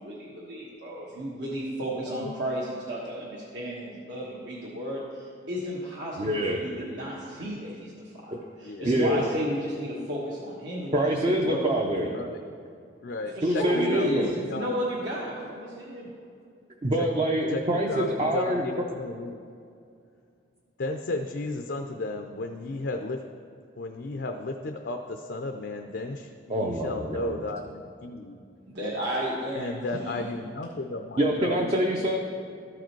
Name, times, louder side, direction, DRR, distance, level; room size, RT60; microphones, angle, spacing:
voice 1, 0.0-8.3 8.6-11.6 12.0-12.1 13.3-16.1 28.7-30.3 31.2-31.8, equal, 65° right, -6 dB, 1.3 m, -33 dB
voice 2, 1.9-2.3 8.6-8.9 12.1-12.4 13.0-14.7 17.0-17.1 17.5-17.6 17.9-19.4 20.8-23.2 23.8-28.4 29.5-31.6, left 2 dB, 60° left, 5 dB, 0.5 m, -34 dB
voice 3, 6.2-6.6 8.3-8.4 8.8-9.2 10.9-12.2 13.4-14.3 16.8-18.7 26.5-27.3 31.2-32.2, right 1 dB, 30° right, 0 dB, 0.6 m, -25 dB
13.5 x 4.9 x 4.5 m, 2.4 s
head